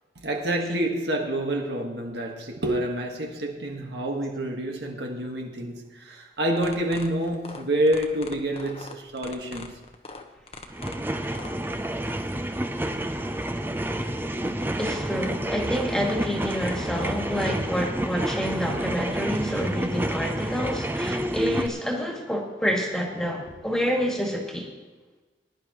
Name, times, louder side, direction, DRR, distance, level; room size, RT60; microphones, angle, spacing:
voice 1, 0.1-9.8, right 1 dB, 75° right, 1.7 m, -28 dB
sound 1, 6.6-11.5, left 3 dB, 35° left, 1.0 m, -41 dB
sound 2, 10.7-21.7, right 1 dB, 10° right, 0.5 m, -29 dB
voice 2, 14.8-24.7, equal, 5° left, 1.9 m, -28 dB
20.0 x 11.0 x 3.1 m
head